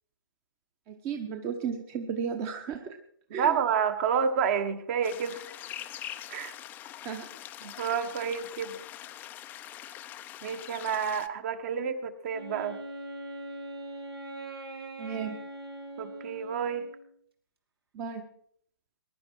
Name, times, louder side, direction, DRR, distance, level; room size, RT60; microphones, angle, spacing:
voice 1, 0.9-3.0 3.3-3.6 7.0-7.3 15.0-15.4 17.9-18.2, right 7 dB, 20° right, 6 dB, 1.0 m, -34 dB
voice 2, 3.3-5.4 6.3-6.5 7.6-8.8 10.4-12.8 16.0-16.9, right 7 dB, 35° right, 9 dB, 1.4 m, -29 dB
sound 1, 5.0-11.3, left 12 dB, 15° left, 0.5 m, -43 dB
Wind instrument woodwind instrument, 12.3-17.1, right 1 dB, 85° right, 3.0 m, -41 dB
21.0 x 11.5 x 4.6 m, 0.63 s
hypercardioid pair, 140°, 12 cm